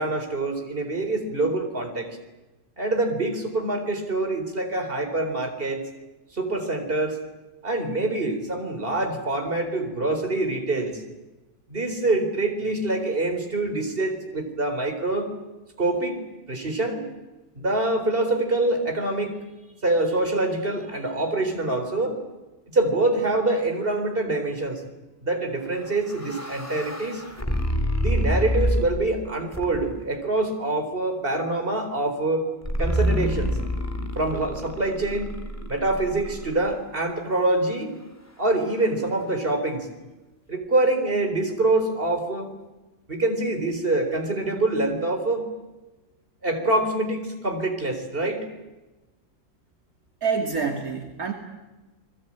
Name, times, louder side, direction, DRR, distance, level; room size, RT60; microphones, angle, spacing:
voice 1, 0.0-2.2 2.8-5.9 6.3-7.2 7.6-11.0 11.7-15.3 15.8-16.2 16.5-17.0 17.6-19.5 19.8-22.2 22.7-24.8 25.2-27.2 28.0-32.5 32.8-33.6 34.2-35.4 35.7-37.9 38.4-39.9 40.5-42.5 43.1-45.5 46.4-48.5, right 2 dB, 35° right, 5 dB, 4.4 m, -25 dB
sound 1, 25.7-29.1 29.5-30.1 32.6-36.7, equal, 10° left, 2.8 m, -27 dB
voice 2, 50.2-51.3, right 5 dB, 65° right, 3 dB, 2.9 m, -26 dB
30.0 x 21.0 x 8.9 m, 1.1 s
omnidirectional pair, 1.7 m